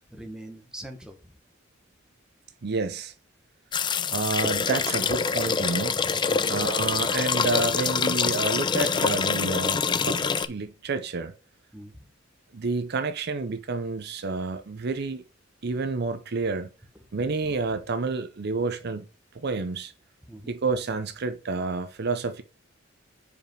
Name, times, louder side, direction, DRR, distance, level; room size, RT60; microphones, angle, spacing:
voice 1, 0.1-1.3 6.3-6.6 11.7-12.0 20.3-20.5, right 1 dB, 5° right, 1.1 m, -42 dB
voice 2, 2.6-3.1 4.1-6.0 6.5-11.3 12.5-15.2 15.6-16.7 17.1-19.1 19.3-19.9 20.5-22.4, right 3 dB, 55° right, 0.6 m, -29 dB
sound 1, 3.7-10.5, left 5 dB, 25° left, 0.3 m, -25 dB
sound 2, 4.7-9.9, left 1 dB, 20° right, 2.0 m, -52 dB
5.0 x 5.0 x 4.5 m
head